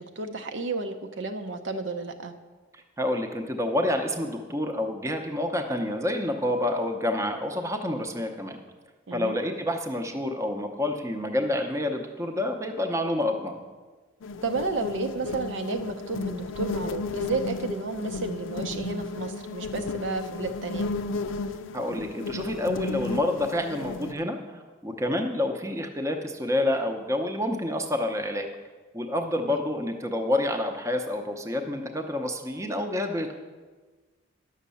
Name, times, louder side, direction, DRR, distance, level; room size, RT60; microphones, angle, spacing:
voice 1, 0.0-2.3 9.1-9.4 14.4-20.9 29.4-29.6, right 3 dB, 65° right, 5 dB, 0.7 m, -32 dB
voice 2, 2.7-8.6 9.1-13.6 21.7-24.4 24.8-28.5 28.9-33.3, left 1 dB, 15° right, 4 dB, 0.7 m, -28 dB
sound 1, 14.2-24.1, left 3 dB, 75° left, 0.5 m, -34 dB
11.0 x 6.3 x 6.9 m, 1.4 s
head